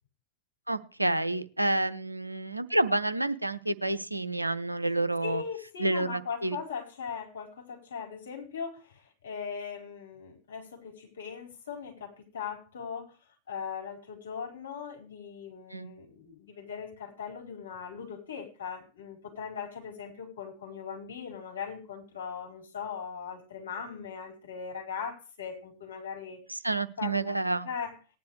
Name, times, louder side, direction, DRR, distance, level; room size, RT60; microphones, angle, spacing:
voice 1, 0.7-5.4 5.8-6.6 15.7-15.9 26.5-27.7, right 2 dB, 85° right, 12 dB, 0.8 m, -29 dB
voice 2, 5.2-13.1 13.5-26.4 27.0-27.4 27.6-28.0, left 6 dB, 65° left, 1 dB, 5.0 m, -39 dB
19.0 x 10.5 x 3.3 m, 0.34 s
figure-of-eight pair, 90°, 0 cm